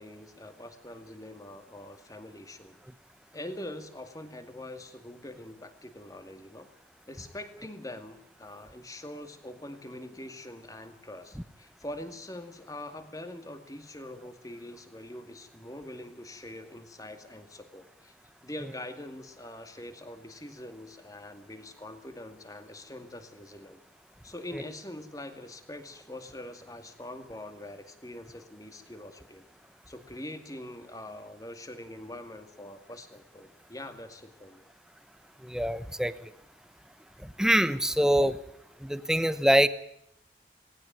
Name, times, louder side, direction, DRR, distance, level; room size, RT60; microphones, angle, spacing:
voice 1, 0.0-2.8 3.3-6.7 7.1-18.1 18.4-23.8 24.2-29.4 29.9-34.6, left 1 dB, 20° left, 8 dB, 2.3 m, -43 dB
voice 2, 35.4-36.1 37.2-38.4 38.8-39.7, right 1 dB, 5° right, 13 dB, 0.9 m, -24 dB
19.0 x 18.0 x 9.3 m, 0.77 s
head